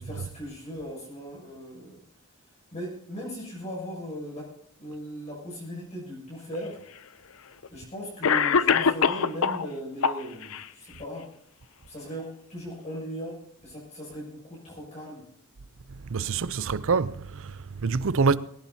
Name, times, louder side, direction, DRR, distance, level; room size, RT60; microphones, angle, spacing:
voice 1, 0.0-2.0 2.7-4.5 4.8-6.8 7.7-11.3 11.9-15.3, equal, 35° left, 6.8 m, -38 dB
Cough, 6.5-6.6 7.6-7.7 8.2-9.7 10.0-10.6, left 6 dB, 70° left, 0.6 m, -23 dB
voice 2, 16.1-18.4, right 4 dB, 65° right, 0.6 m, -26 dB
20.5 x 18.0 x 2.8 m
head